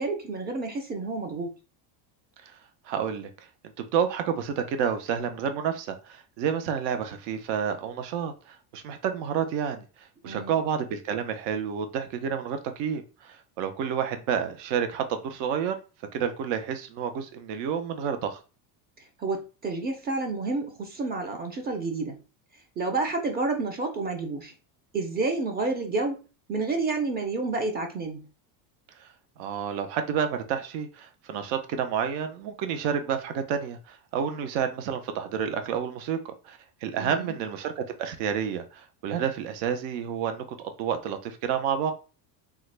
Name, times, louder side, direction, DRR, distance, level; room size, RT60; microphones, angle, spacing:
voice 1, 0.0-1.5 10.2-10.6 19.2-22.2 22.8-24.5 24.9-26.2 26.5-28.2 36.9-37.3, right 3 dB, 20° right, 0.5 m, -29 dB
voice 2, 2.8-3.5 3.8-15.8 16.1-18.4 29.0-29.1 29.4-36.2 36.4-41.9, right 8 dB, 65° right, 0.7 m, -30 dB
3.5 x 2.1 x 3.2 m
cardioid pair, 145°, 48 cm